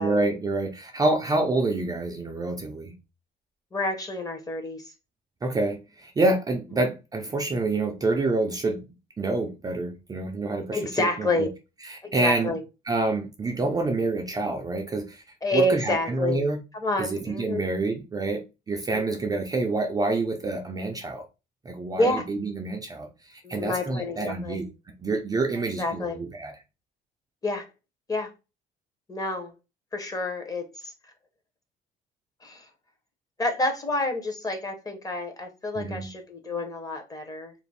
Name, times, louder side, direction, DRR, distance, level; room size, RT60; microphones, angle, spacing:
voice 1, 0.0-2.9 5.4-8.9 9.2-11.5 11.8-12.6 12.9-15.2 15.5-16.6 17.0-21.3 21.7-26.5 35.8-36.1, right 2 dB, 20° right, 0.4 m, -27 dB
voice 2, 3.7-4.9 10.7-11.5 12.0-12.6 15.4-16.4 16.7-17.6 18.9-19.0 21.9-22.3 23.4-24.6 25.8-26.2 27.4-27.7 28.1-28.3 29.1-29.5 29.9-30.9 32.4-32.6 33.4-37.5, left 2 dB, 20° left, 0.7 m, -28 dB
2.5 x 2.0 x 3.2 m
cardioid pair, 110°, 17 cm